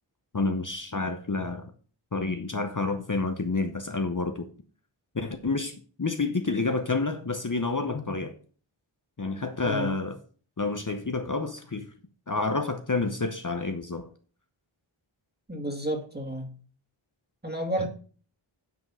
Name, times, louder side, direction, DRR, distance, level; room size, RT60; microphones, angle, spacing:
voice 1, 0.3-1.7 2.1-4.5 5.1-8.3 9.2-10.2 10.6-11.9 12.3-14.1 17.8-17.9, left 3 dB, 40° left, 0.9 m, -29 dB
voice 2, 9.7-10.0 15.5-16.5 17.4-17.9, equal, 20° right, 2.3 m, -31 dB
9.4 x 5.3 x 6.1 m
wide cardioid pair, 45°, 50 cm